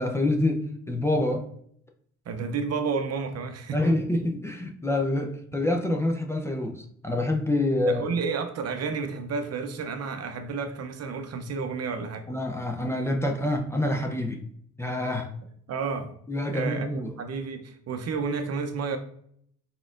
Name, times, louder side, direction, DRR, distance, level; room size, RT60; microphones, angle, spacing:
voice 1, 0.0-1.4 3.7-8.0 12.3-14.4 14.8-15.3 16.3-17.1, left 1 dB, 10° left, 0.5 m, -26 dB
voice 2, 2.3-3.9 7.9-12.3 15.7-16.1 16.5-19.0, right 5 dB, 55° right, 0.6 m, -31 dB
4.0 x 3.7 x 2.5 m
cardioid pair, 90°, 30 cm